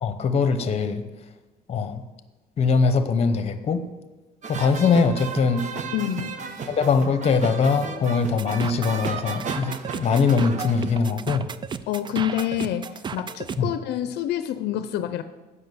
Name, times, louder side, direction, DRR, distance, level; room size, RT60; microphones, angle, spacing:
voice 1, 0.0-1.0 1.7-2.0 2.6-3.8 4.5-5.7 6.7-11.5 13.6-13.7, left 5 dB, 40° left, 10 dB, 0.9 m, -22 dB
sound 1, 4.4-11.0, right 5 dB, 45° right, 0.9 m, -34 dB
voice 2, 5.9-6.4 11.9-15.2, left 11 dB, 80° left, 11 dB, 0.6 m, -27 dB
sound 2, 8.4-13.6, right 6 dB, 30° right, 0.4 m, -34 dB
8.1 x 5.6 x 7.8 m, 1.2 s
cardioid pair, 110°, 17 cm